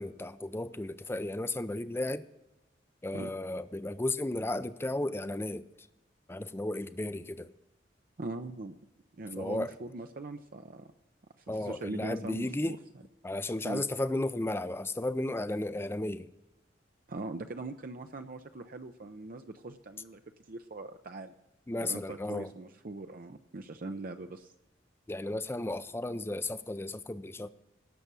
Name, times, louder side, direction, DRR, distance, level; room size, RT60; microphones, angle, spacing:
voice 1, 0.0-2.3 3.0-5.9 6.3-7.5 9.4-9.7 11.5-12.8 13.2-16.3 21.7-22.5 25.1-27.5, left 2 dB, 15° left, 14 dB, 0.5 m, -34 dB
voice 2, 8.2-8.7 9.2-10.9 11.4-12.8 13.6-13.8 17.1-20.2 20.5-21.3 21.8-24.5, right 2 dB, 50° right, 7 dB, 0.6 m, -41 dB
18.0 x 6.9 x 6.1 m, 1.0 s
head